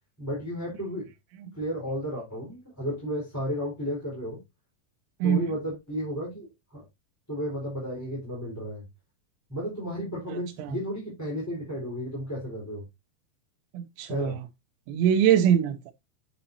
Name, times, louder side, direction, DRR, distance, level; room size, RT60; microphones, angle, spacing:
voice 1, 0.2-1.1 1.5-4.4 5.2-6.8 7.3-8.8 9.5-12.8 14.1-14.4, equal, 5° left, 4.1 m, -33 dB
voice 2, 10.3-10.8 13.7-14.3 14.9-15.9, right 9 dB, 90° right, 3.0 m, -23 dB
8.7 x 7.9 x 2.7 m
omnidirectional pair, 5.0 m